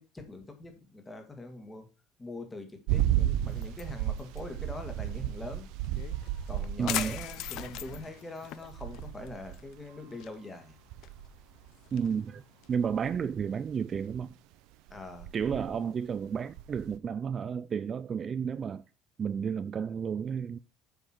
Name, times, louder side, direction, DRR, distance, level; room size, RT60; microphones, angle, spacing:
voice 1, 0.0-1.9 2.2-5.7 6.5-10.7 14.9-15.3, left 2 dB, 15° left, 2.0 m, -43 dB
sound 1, 2.9-8.1 8.6-9.7 10.9-12.0 12.9-14.2 14.9-15.8 16.2-17.0, right 12 dB, 80° right, 0.6 m, -34 dB
sound 2, 3.5-13.2, left 14 dB, 70° left, 0.6 m, -43 dB
voice 2, 6.8-7.2 11.9-12.4 12.7-14.3 15.3-18.8 19.2-20.6, right 7 dB, 35° right, 0.4 m, -32 dB
8.0 x 6.0 x 4.5 m
cardioid pair, 135°, 0 cm